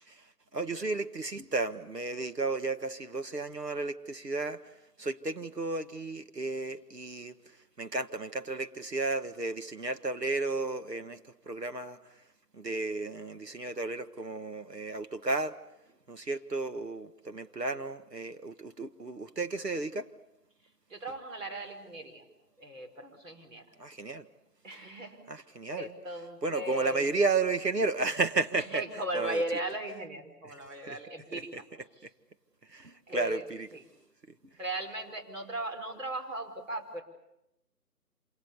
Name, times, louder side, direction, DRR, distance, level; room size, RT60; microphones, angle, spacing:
voice 1, 0.5-4.6 5.0-7.3 7.8-11.2 11.5-12.0 12.5-15.6 16.1-20.1 23.8-24.3 25.3-25.9 26.4-28.8 29.1-29.4 30.9-31.0 31.3-31.4 32.7-33.7, right 3 dB, 80° right, 8 dB, 1.7 m, -33 dB
voice 2, 20.9-22.3 22.6-23.6 24.6-25.2 25.7-27.0 28.5-31.6 32.0-32.1 33.1-33.4 33.7-33.8 34.6-37.0, right 1 dB, 50° right, 3 dB, 5.0 m, -37 dB
27.0 x 27.0 x 7.1 m, 0.86 s
figure-of-eight pair, 155°, 48 cm